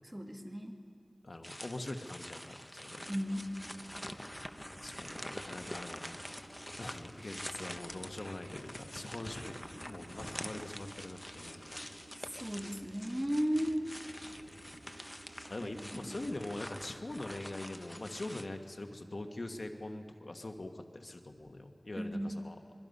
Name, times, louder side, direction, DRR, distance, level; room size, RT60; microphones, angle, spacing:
voice 1, 0.0-0.7 3.1-3.5 12.3-13.9 15.6-15.7 16.0-16.1 22.0-22.4, equal, 15° right, 3 dB, 1.9 m, -35 dB
voice 2, 1.2-3.0 4.8-6.2 6.8-11.8 15.5-22.6, left 2 dB, 65° left, 5 dB, 1.5 m, -43 dB
sound 1, 1.4-18.5, equal, 10° left, 1.0 m, -46 dB
sound 2, 3.0-16.6, right 1 dB, 70° right, 2.9 m, -56 dB
24.0 x 23.0 x 5.5 m, 2.4 s
wide cardioid pair, 55°, 0 cm